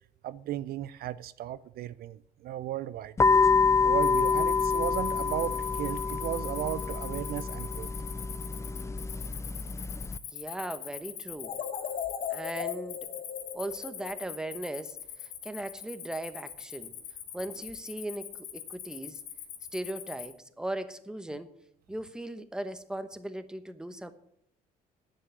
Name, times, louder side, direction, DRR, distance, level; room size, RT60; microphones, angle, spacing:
voice 1, 0.2-3.1 3.8-7.9, right 12 dB, 65° right, 0.5 m, -35 dB
sound 1, 3.2-10.2, left 4 dB, 15° left, 0.4 m, -27 dB
Cricket, 4.0-20.3, left 10 dB, 80° left, 2.0 m, -42 dB
voice 2, 10.3-11.6 12.3-13.0 13.5-16.9 17.3-19.2 19.7-21.5 21.9-24.1, right 1 dB, 5° right, 1.0 m, -38 dB
sound 2, 11.4-14.6, left 8 dB, 50° left, 1.3 m, -37 dB
10.5 x 7.7 x 9.1 m
cardioid pair, 110°, 17 cm